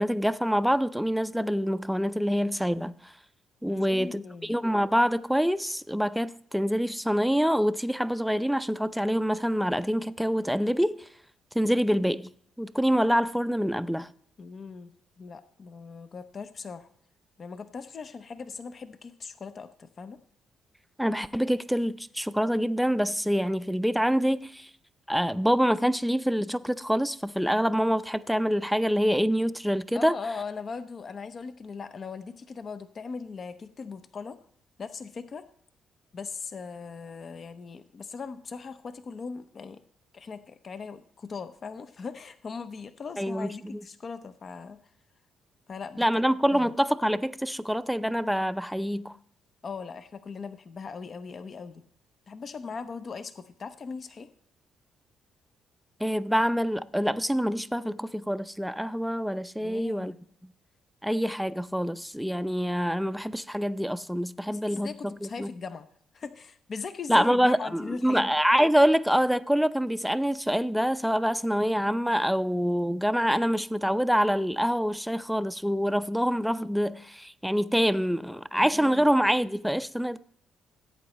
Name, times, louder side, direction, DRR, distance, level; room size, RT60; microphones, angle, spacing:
voice 1, 0.0-2.9 3.6-11.0 11.5-12.3 12.6-14.1 21.0-24.7 25.1-30.2 43.2-43.8 46.0-49.1 56.0-60.1 61.0-65.5 67.1-80.2, equal, ahead, 0.5 m, -26 dB
voice 2, 3.7-4.6 14.4-14.9 15.2-16.9 17.4-20.2 29.9-34.4 34.8-35.5 36.1-39.8 40.1-44.8 45.7-46.1 46.5-46.7 49.6-51.8 52.3-54.3 59.6-60.2 64.5-65.9 66.1-68.3 78.5-79.1, left 5 dB, 45° left, 0.7 m, -39 dB
16.0 x 8.7 x 3.1 m
cardioid pair, 90°, 0 cm